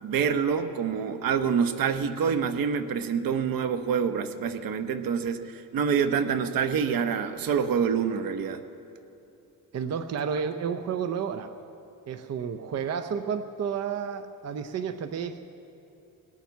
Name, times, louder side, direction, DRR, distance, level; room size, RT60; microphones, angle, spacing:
voice 1, 0.0-8.6, right 6 dB, 80° right, 9 dB, 0.9 m, -26 dB
voice 2, 9.7-11.5 12.1-15.4, right 7 dB, 50° right, 8 dB, 0.6 m, -31 dB
18.5 x 7.3 x 9.2 m, 2.7 s
cardioid pair, 120°, 34 cm